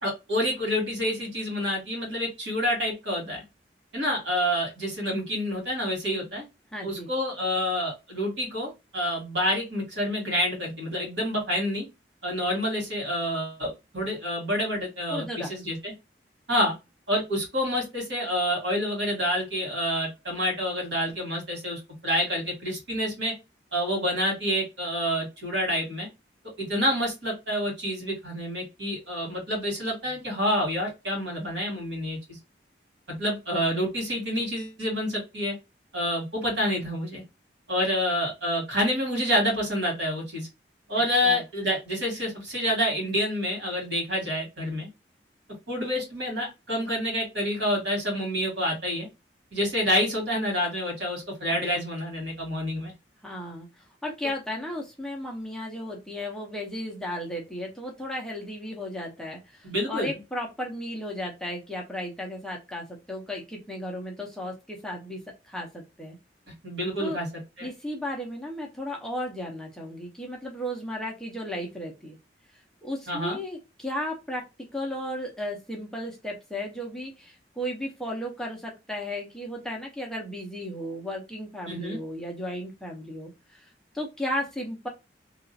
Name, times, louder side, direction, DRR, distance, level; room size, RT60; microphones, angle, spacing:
voice 1, 0.0-3.4 3.9-6.4 6.8-11.9 12.2-15.9 16.5-16.7 17.1-23.3 23.7-26.1 26.6-32.2 33.1-35.5 35.9-37.2 37.7-40.5 40.9-44.9 45.7-49.1 49.5-52.9 59.6-60.1 66.6-67.3 67.6-67.7 73.1-73.4 81.7-82.0, equal, 80° right, -1 dB, 1.8 m, -28 dB
voice 2, 6.7-7.1 15.1-15.6 41.2-41.4 51.5-51.6 53.2-53.7 54.0-65.2 65.4-66.2 67.0-67.2 67.6-72.2 72.8-74.4 74.7-83.7 83.9-84.9, left 1 dB, 5° left, -1 dB, 0.7 m, -34 dB
2.9 x 2.4 x 2.7 m, 0.24 s
head